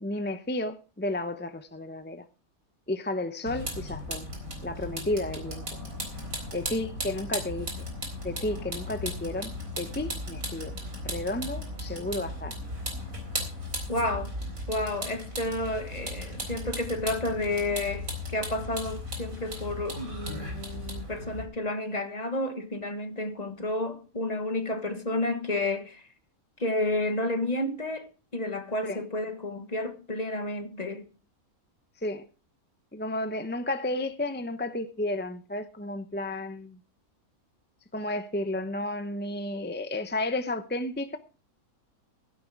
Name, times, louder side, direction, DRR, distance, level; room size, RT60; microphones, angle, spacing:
voice 1, 0.0-2.3 2.9-4.3 4.6-5.6 6.5-7.7 8.2-9.5 9.8-10.7 11.0-12.6 28.8-29.0 32.0-32.2 32.9-36.8 37.9-41.2, left 1 dB, 10° left, 0.5 m, -32 dB
Vehicle, 3.5-21.4, equal, 60° right, 4.3 m, -36 dB
voice 2, 13.9-14.3 14.7-26.0 26.6-31.1, left 2 dB, 30° left, 1.3 m, -31 dB
15.5 x 9.5 x 4.8 m
omnidirectional pair, 1.6 m